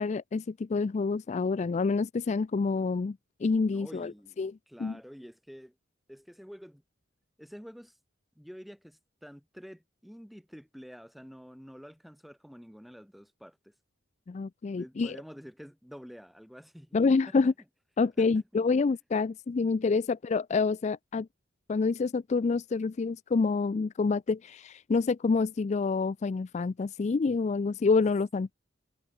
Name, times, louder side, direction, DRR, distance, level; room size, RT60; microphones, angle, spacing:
voice 1, 0.0-4.1 4.4-4.5 4.8-5.0 14.3-15.2 16.9-17.5 18.0-21.3 21.7-28.5, left 4 dB, 35° left, 0.3 m, -27 dB
voice 2, 3.7-4.4 4.7-5.7 6.1-6.8 7.4-8.0 8.3-13.7 14.7-17.5 18.0-18.4 18.7-18.9, equal, ahead, 1.5 m, -48 dB
head